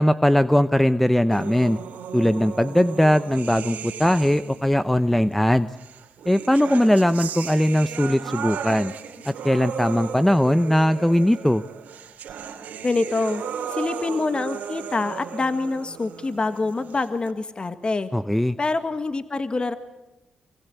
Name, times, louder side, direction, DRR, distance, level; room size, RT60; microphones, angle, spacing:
voice 1, 0.0-1.8 2.1-5.7 6.3-8.9 9.2-11.6 18.1-18.6, left 1 dB, 5° left, 13 dB, 0.8 m, -20 dB
sound 1, 1.3-4.8 5.8-17.3, right 7 dB, 80° right, 2.7 m, -35 dB
voice 2, 12.8-13.4 13.7-18.1 18.6-19.7, left 3 dB, 35° left, 10 dB, 1.7 m, -25 dB
25.0 x 24.0 x 8.3 m, 1.1 s
supercardioid pair, 55°, 3 cm